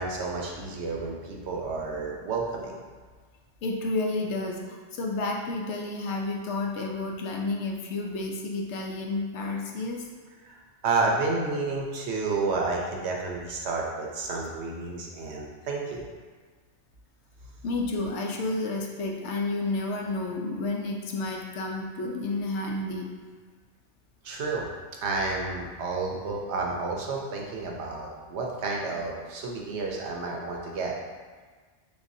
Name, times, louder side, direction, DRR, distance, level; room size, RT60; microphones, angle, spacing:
voice 1, 0.0-2.8 10.4-10.6 10.8-16.1 24.2-24.6 25.0-30.9, right 3 dB, 70° right, -1 dB, 0.9 m, -30 dB
voice 2, 3.6-10.1 17.6-23.1, left 2 dB, 70° left, 0 dB, 0.9 m, -31 dB
6.5 x 2.3 x 2.6 m, 1.5 s
omnidirectional pair, 1.2 m